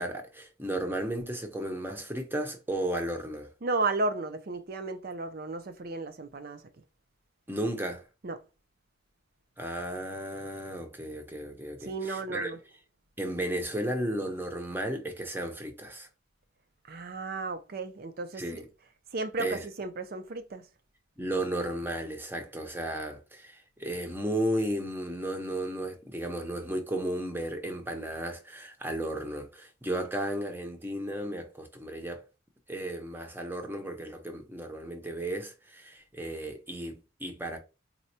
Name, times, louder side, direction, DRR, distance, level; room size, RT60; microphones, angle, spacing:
voice 1, 0.0-3.5 7.5-8.0 9.6-12.5 13.2-16.1 18.3-18.7 19.4-19.7 21.2-32.2 32.7-37.6, right 1 dB, 10° right, 0.7 m, -34 dB
voice 2, 3.6-6.6 8.2-8.4 11.8-12.6 16.9-18.6 19.1-20.6, right 3 dB, 50° right, 0.5 m, -34 dB
4.2 x 2.3 x 2.7 m
head